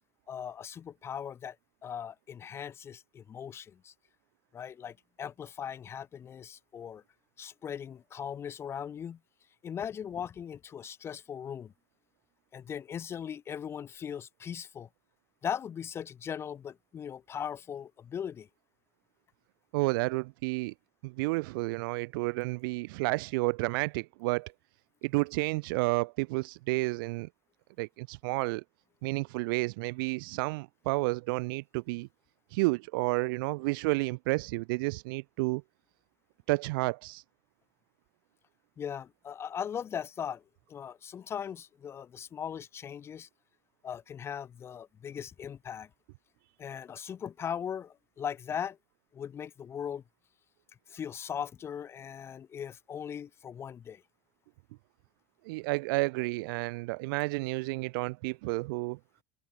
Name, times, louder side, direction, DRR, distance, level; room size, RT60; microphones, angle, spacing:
voice 1, 0.3-1.6 1.8-3.9 4.5-7.0 7.4-9.2 9.6-11.7 12.5-14.9 15.4-18.5 38.8-40.4 40.7-43.3 43.8-45.9 46.6-48.8 49.1-50.0 50.9-54.0, left 8 dB, 20° left, 1.5 m, -39 dB
voice 2, 19.7-20.7 21.0-24.5 25.0-27.3 27.8-28.6 29.0-32.1 32.5-35.6 36.5-37.2 55.4-59.0, right 25 dB, 55° right, 0.6 m, -31 dB
supercardioid pair, 175°, 13 cm